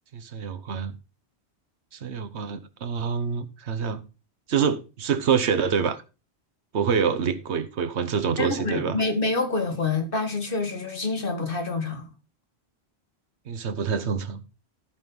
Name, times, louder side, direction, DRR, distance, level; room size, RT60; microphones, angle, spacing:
voice 1, 0.1-1.0 1.9-4.0 4.5-6.0 6.7-9.0 13.5-14.4, right 6 dB, 85° right, 1.2 m, -26 dB
voice 2, 8.4-12.1, left 3 dB, 55° left, 1.8 m, -27 dB
14.0 x 5.3 x 3.9 m
omnidirectional pair, 1.1 m